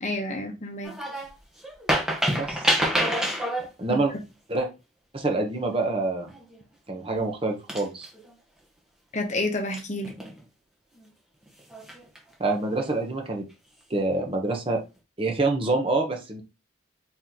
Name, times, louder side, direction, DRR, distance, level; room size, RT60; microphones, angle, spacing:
voice 1, 0.0-0.9 3.9-4.0 9.1-10.1, left 2 dB, 35° left, 0.9 m, -29 dB
sound 1, 0.8-1.3 1.6-3.7 6.3-6.6 7.1-7.2 7.7-8.3 9.7-10.4 11.6-12.2 12.7-12.9, equal, 5° right, 1.0 m, -27 dB
voice 2, 2.3-2.6 3.8-4.1 4.5-4.7 5.1-6.3 6.9-8.1 12.4-13.4 13.9-14.8 15.2-16.4, right 2 dB, 30° right, 0.9 m, -26 dB
4.4 x 3.1 x 3.9 m
head